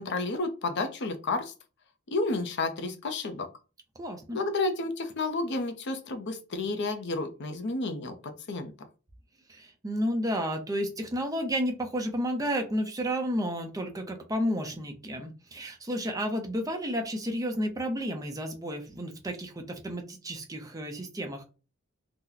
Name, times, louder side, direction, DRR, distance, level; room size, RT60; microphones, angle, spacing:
voice 1, 0.0-1.5 2.1-3.5 4.3-8.1 8.5-8.7, left 3 dB, 55° left, 7 dB, 0.6 m, -31 dB
voice 2, 4.0-4.4 9.5-21.4, equal, 15° right, 4 dB, 0.5 m, -31 dB
2.8 x 2.1 x 3.8 m, 0.33 s
head